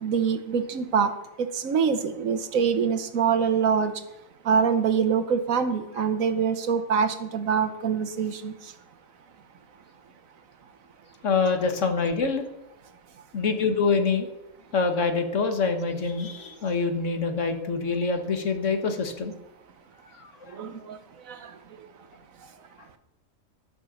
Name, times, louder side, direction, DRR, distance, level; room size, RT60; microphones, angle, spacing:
voice 1, 0.0-1.1 1.4-4.0 4.4-8.7 20.5-21.0 21.2-21.9, right 6 dB, 85° right, 9 dB, 1.4 m, -25 dB
voice 2, 11.2-12.5 13.3-14.3 14.7-19.3 20.2-20.6, left 4 dB, 65° left, 6 dB, 1.6 m, -25 dB
13.5 x 6.2 x 7.0 m, 0.91 s
omnidirectional pair, 1.4 m